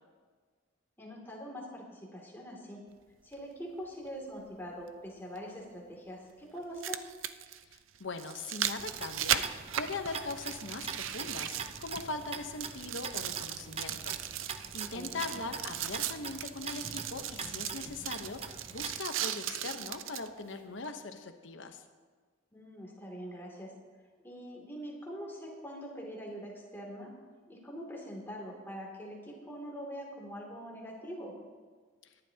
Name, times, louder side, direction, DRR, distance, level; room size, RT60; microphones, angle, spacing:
voice 1, 1.0-2.8 3.2-7.0 14.9-15.4 22.5-23.7 24.2-27.1 27.5-31.3, equal, 10° left, -2 dB, 2.7 m, -43 dB
sound 1, 3.3-3.4 5.4-5.5 6.6-12.3 12.6-20.3 20.9-21.0, right 11 dB, 75° right, 0.5 m, -37 dB
voice 2, 7.6-21.8, left 3 dB, 65° left, 6 dB, 1.0 m, -41 dB
sound 2, 8.8-19.0, right 5 dB, 30° right, 0.6 m, -44 dB
23.0 x 11.0 x 2.9 m, 1.5 s
head